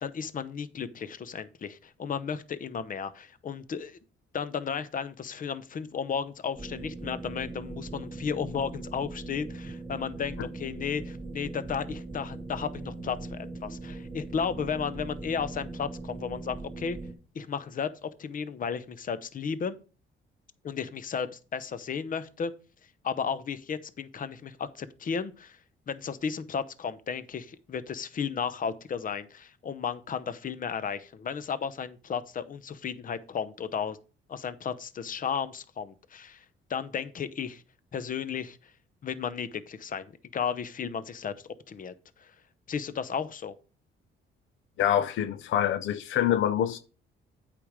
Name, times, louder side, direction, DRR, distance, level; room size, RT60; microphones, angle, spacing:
voice 1, 0.0-4.0 4.3-17.0 17.3-19.7 20.6-22.5 23.0-25.6 25.9-34.0 34.3-36.4 36.7-37.6 37.9-38.6 39.0-41.3 41.7-41.9 42.2-42.3 42.7-43.5, left 6 dB, 45° left, 0.8 m, -34 dB
sound 1, 6.5-17.1, right 2 dB, 10° right, 2.1 m, -40 dB
voice 2, 44.8-46.8, left 10 dB, 80° left, 0.6 m, -25 dB
8.4 x 5.1 x 4.9 m
cardioid pair, 90°, 20 cm